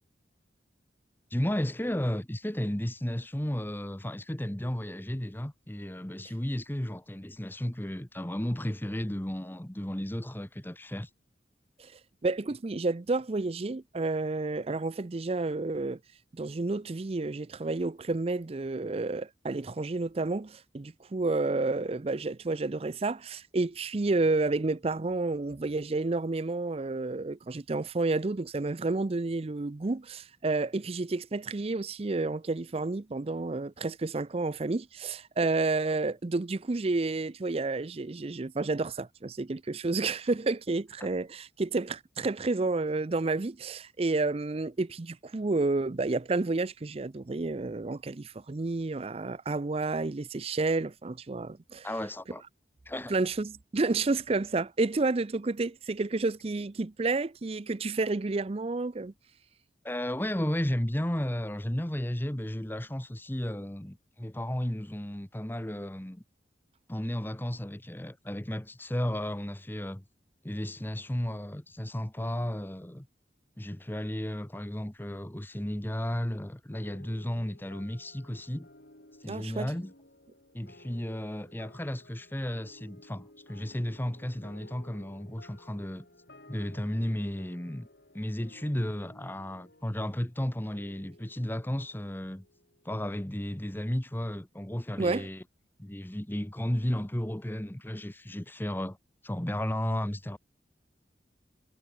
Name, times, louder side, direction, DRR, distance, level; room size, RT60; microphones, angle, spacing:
voice 1, 1.3-11.1 35.4-35.5 51.8-52.4 52.8-53.1 59.8-66.2 66.9-70.0 70.4-73.1 73.6-78.7 79.2-79.9 80.5-86.1 86.5-87.9 88.1-92.4 92.8-95.4 95.8-99.0 99.2-100.4, left 1 dB, 10° left, 1.0 m, -33 dB
voice 2, 12.2-16.0 16.3-51.9 53.1-59.1 79.3-79.7 95.0-95.3, right 3 dB, 35° right, 0.5 m, -30 dB
sound 1, 76.7-93.5, left 1 dB, 70° left, 6.8 m, -56 dB
head